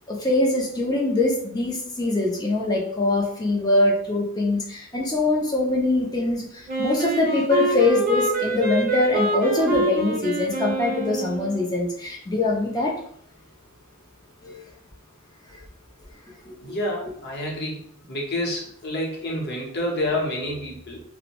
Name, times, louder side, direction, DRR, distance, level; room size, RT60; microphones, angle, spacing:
voice 1, 0.1-12.9 14.4-14.6 15.5-15.6 16.5-16.7, left 2 dB, 20° left, -1 dB, 0.4 m, -23 dB
Wind instrument woodwind instrument, 6.7-11.7, right 2 dB, 40° right, 0.6 m, -26 dB
voice 2, 16.6-17.8 18.1-21.0, left 1 dB, 50° left, -1 dB, 0.7 m, -28 dB
2.6 x 2.0 x 2.9 m, 0.63 s
head